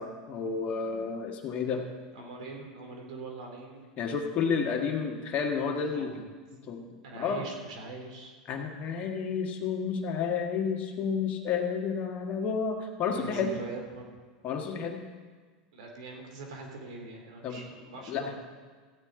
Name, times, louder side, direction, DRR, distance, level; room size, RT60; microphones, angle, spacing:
voice 1, 0.0-1.8 4.0-6.2 6.7-6.9 7.1-7.4 8.5-13.5 14.4-15.0 17.4-17.6 18.1-18.3, left 6 dB, 40° left, 2 dB, 1.6 m, -31 dB
voice 2, 2.1-3.9 5.7-6.2 7.0-8.3 13.1-14.1 15.7-18.4, right 3 dB, 80° right, 2 dB, 2.5 m, -43 dB
15.0 x 9.1 x 3.8 m, 1.5 s
supercardioid pair, 115°, 4 cm